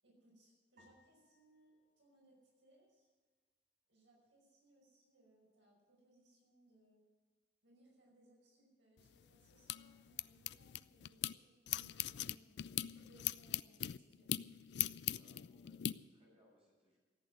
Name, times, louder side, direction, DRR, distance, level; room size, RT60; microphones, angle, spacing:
voice 1, 0.0-3.1 3.9-7.0 7.6-12.5 12.9-14.5, right 1 dB, 90° right, -2 dB, 5.6 m, -68 dB
sound 1, 0.8-3.2, left 1 dB, 55° right, 3.3 m, -73 dB
sound 2, 9.0-11.3 11.7-15.9, left 12 dB, 70° left, 0.4 m, -41 dB
voice 2, 15.0-17.0, equal, 30° right, -4 dB, 6.2 m, -71 dB
14.5 x 8.6 x 9.2 m, 1.4 s
head